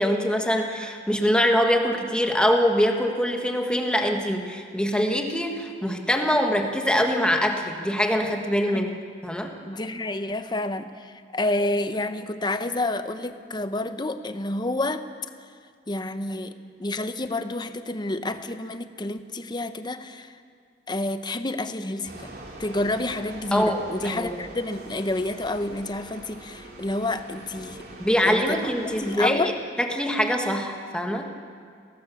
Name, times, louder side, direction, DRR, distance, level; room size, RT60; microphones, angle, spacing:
voice 1, 0.0-8.9 9.2-9.5 23.5-24.3 28.0-29.5 29.8-31.3, equal, 5° left, 3 dB, 1.5 m, -23 dB
voice 2, 9.7-15.1 15.9-16.5 16.8-20.3 20.9-22.3 22.6-27.8 28.2-28.6 28.8-29.5, left 2 dB, 25° left, 9 dB, 0.9 m, -29 dB
sound 1, 22.0-29.2, right 1 dB, 60° right, 3.3 m, -43 dB
23.0 x 17.5 x 7.2 m, 2.2 s
head